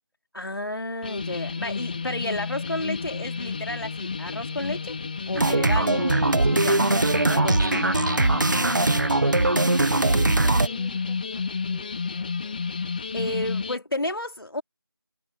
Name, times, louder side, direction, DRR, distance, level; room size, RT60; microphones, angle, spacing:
voice 1, 0.3-5.0 5.3-7.9 13.1-14.6, left 1 dB, 75° left, 2.9 m, -32 dB
sound 1, 1.0-13.8, left 5 dB, 25° left, 3.8 m, -32 dB
sound 2, 5.4-10.7, right 2 dB, 55° right, 1.7 m, -21 dB
voice 2, 8.8-12.6, right 2 dB, ahead, 0.6 m, -54 dB
figure-of-eight pair, 170°, 12 cm